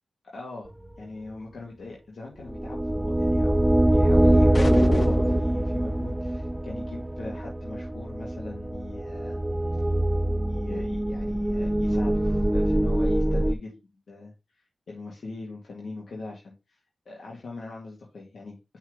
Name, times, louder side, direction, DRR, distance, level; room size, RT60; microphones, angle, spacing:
voice 1, 0.3-0.7 1.0-9.4 10.5-13.8 14.1-16.8 17.1-18.8, left 3 dB, 75° left, -3 dB, 2.1 m, -41 dB
sound 1, 2.4-13.5, right 1 dB, 15° right, 0.4 m, -24 dB
sound 2, 4.5-5.6, left 2 dB, 40° left, 0.9 m, -29 dB
5.9 x 4.5 x 4.8 m, 0.25 s
cardioid pair, 65°, 0 cm